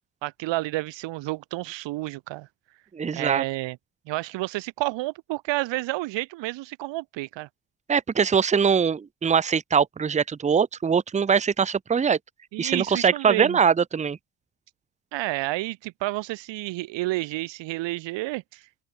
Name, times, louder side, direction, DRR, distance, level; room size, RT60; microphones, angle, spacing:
voice 1, 0.2-2.5 3.1-3.8 4.1-7.5 12.5-13.6 15.1-18.6, right 19 dB, 70° right, 0.5 m, -30 dB
voice 2, 2.9-3.4 7.9-12.2 12.6-14.2, right 6 dB, 15° right, 0.6 m, -22 dB
open air
cardioid pair, 140°, 45 cm